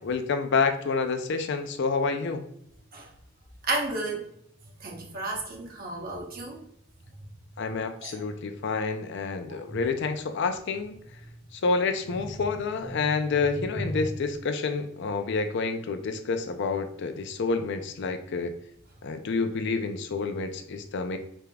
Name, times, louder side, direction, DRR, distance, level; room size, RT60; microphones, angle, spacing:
voice 1, 0.0-2.4 7.6-10.9 11.5-18.5 19.0-21.2, left 4 dB, 60° left, 7 dB, 0.5 m, -28 dB
voice 2, 3.7-4.2 4.8-6.6 8.0-8.1, right 2 dB, 45° right, 1 dB, 0.9 m, -32 dB
5.0 x 3.5 x 2.3 m, 0.73 s
head